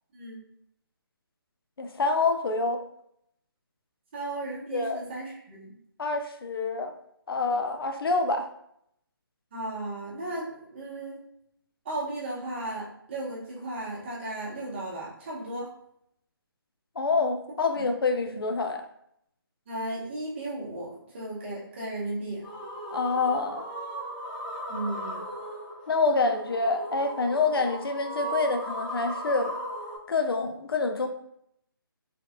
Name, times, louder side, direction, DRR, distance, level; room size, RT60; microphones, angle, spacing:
voice 1, 1.8-2.8 4.7-5.0 6.0-6.9 7.3-8.5 17.0-18.9 22.9-23.7 25.9-29.5 30.1-31.1, left 3 dB, 75° left, 6 dB, 0.5 m, -26 dB
voice 2, 4.1-5.7 9.5-11.2 11.8-15.7 17.7-17.8 18.3-18.4 19.7-22.5 24.7-25.2, right 2 dB, 30° right, -5 dB, 0.9 m, -35 dB
sound 1, 22.4-30.0, right 1 dB, 25° left, 0.8 m, -37 dB
3.3 x 3.0 x 2.6 m, 0.73 s
hypercardioid pair, 165°, 12 cm